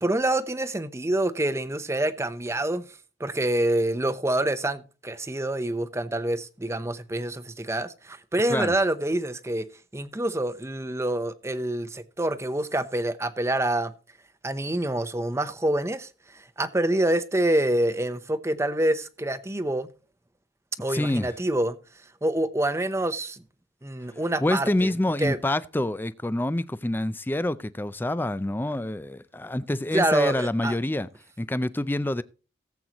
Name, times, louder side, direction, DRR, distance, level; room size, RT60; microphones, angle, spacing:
voice 1, 0.0-2.9 3.2-9.7 9.9-13.9 14.4-16.1 16.3-19.9 20.8-21.8 22.2-23.4 23.8-24.9 25.2-25.4 29.9-30.8, right 1 dB, 15° right, 0.7 m, -26 dB
voice 2, 20.9-21.3 24.4-31.1 31.4-32.2, left 1 dB, 10° left, 0.4 m, -27 dB
18.0 x 7.9 x 3.0 m
head